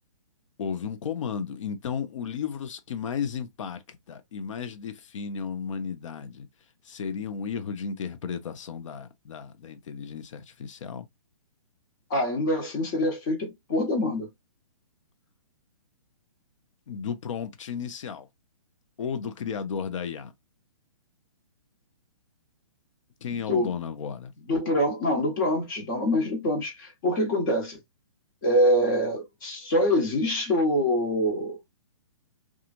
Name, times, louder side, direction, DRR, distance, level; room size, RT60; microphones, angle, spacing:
voice 1, 0.6-6.5 6.8-11.1 16.9-18.3 19.0-20.3 23.2-24.3, left 7 dB, 60° left, 0.6 m, -34 dB
voice 2, 12.1-14.3 23.3-23.7 24.5-27.8 28.4-31.6, left 1 dB, 35° left, 1.2 m, -25 dB
2.9 x 2.4 x 2.5 m
hypercardioid pair, 155°, 18 cm